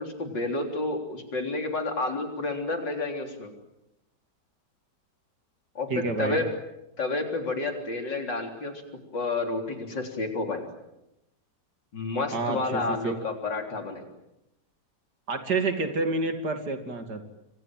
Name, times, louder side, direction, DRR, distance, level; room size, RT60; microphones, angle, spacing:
voice 1, 0.0-3.5 5.8-5.9 6.2-6.5 7.0-8.8 9.1-10.6 11.9-14.1, left 3 dB, 85° left, 4 dB, 4.4 m, -30 dB
voice 2, 5.9-6.4 12.3-13.1 15.3-17.2, right 3 dB, 65° right, 6 dB, 3.2 m, -29 dB
28.0 x 24.0 x 7.7 m, 0.89 s
omnidirectional pair, 1.9 m